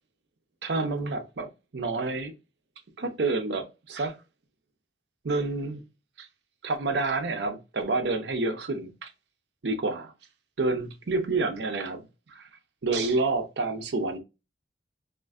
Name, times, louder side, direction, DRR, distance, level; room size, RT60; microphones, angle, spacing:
voice 1, 0.6-2.3 3.0-4.2 5.2-5.8 6.2-6.3 6.6-9.1 9.6-10.1 10.6-12.0 12.3-12.5 12.8-14.2, right 3 dB, 70° right, 0.6 m, -28 dB
3.7 x 2.4 x 2.3 m
head